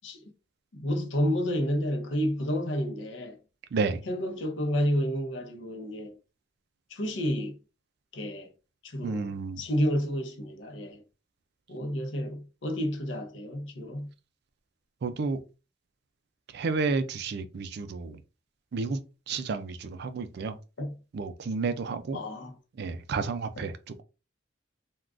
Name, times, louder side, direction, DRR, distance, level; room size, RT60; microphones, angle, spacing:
voice 1, 0.7-3.4 4.1-6.1 6.9-7.6 8.1-8.5 8.8-11.0 11.7-14.1 20.8-21.0 22.1-22.6 23.6-23.7, equal, 65° left, 0.7 m, -30 dB
voice 2, 3.7-4.0 9.0-9.6 15.0-15.4 16.5-18.2 18.7-19.0 19.3-20.6 21.1-22.2 22.8-23.7, right 4 dB, 55° right, 0.4 m, -31 dB
3.5 x 2.3 x 2.4 m
head